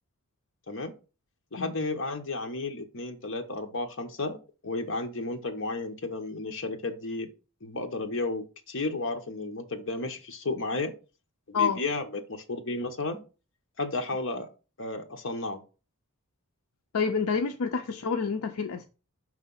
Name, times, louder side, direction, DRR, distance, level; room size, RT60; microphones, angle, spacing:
voice 1, 1.5-4.4 4.6-7.3 7.6-10.9 11.5-13.2 13.8-14.5 14.8-15.6, left 2 dB, 60° left, 5 dB, 1.0 m, -33 dB
voice 2, 16.9-18.9, left 5 dB, 80° left, 6 dB, 0.5 m, -28 dB
5.7 x 3.3 x 5.4 m, 0.33 s
head